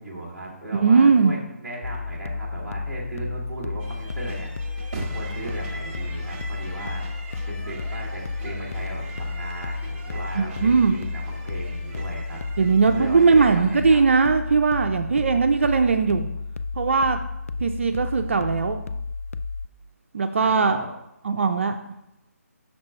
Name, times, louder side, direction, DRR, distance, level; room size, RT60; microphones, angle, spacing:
voice 1, 0.0-12.6 12.9-14.1 20.4-20.9, right 1 dB, ahead, -11 dB, 1.5 m, -37 dB
voice 2, 0.7-1.3 10.3-10.9 12.6-16.3 16.7-17.2 17.6-18.8 20.1-20.8 21.2-21.8, right 5 dB, 50° right, 5 dB, 0.4 m, -19 dB
sound 1, 1.8-19.7, left 4 dB, 60° left, 0.4 m, -32 dB
sound 2, 3.8-14.0, right 3 dB, 35° right, 1.5 m, -41 dB
5.9 x 4.3 x 4.3 m, 0.88 s
figure-of-eight pair, 165°, 8 cm